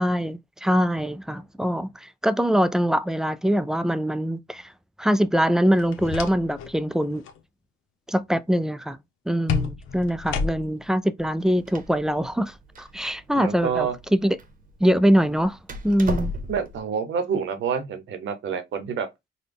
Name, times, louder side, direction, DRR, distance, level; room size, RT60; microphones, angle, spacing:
voice 1, 0.0-4.7 5.0-7.2 8.1-9.0 9.3-14.4 14.8-15.6 15.8-16.3, equal, 5° right, 0.3 m, -23 dB
sound 1, 5.7-6.7 7.0-7.4 9.5-10.9, left 5 dB, 85° left, 0.7 m, -30 dB
Door, 11.2-16.8, equal, 45° right, 0.8 m, -37 dB
voice 2, 13.4-14.0 16.5-19.1, right 6 dB, 70° right, 0.9 m, -27 dB
4.0 x 2.2 x 3.4 m
cardioid pair, 90°, 20 cm